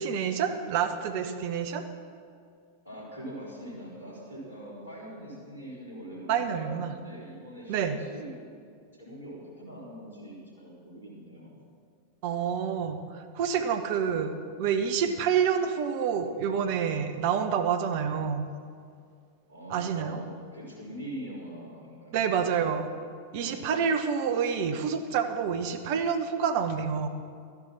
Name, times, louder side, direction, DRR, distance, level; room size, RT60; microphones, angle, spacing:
voice 1, 0.0-1.8 6.3-6.9 7.7-8.0 12.2-18.5 19.7-20.2 22.1-22.9 23.3-27.1, right 7 dB, 50° right, 8 dB, 0.9 m, -28 dB
voice 2, 2.8-8.4 9.0-11.5 19.5-22.2 23.3-23.7, equal, 75° left, -5 dB, 4.2 m, -43 dB
13.0 x 11.0 x 5.9 m, 2.2 s
figure-of-eight pair, 90°, 0 cm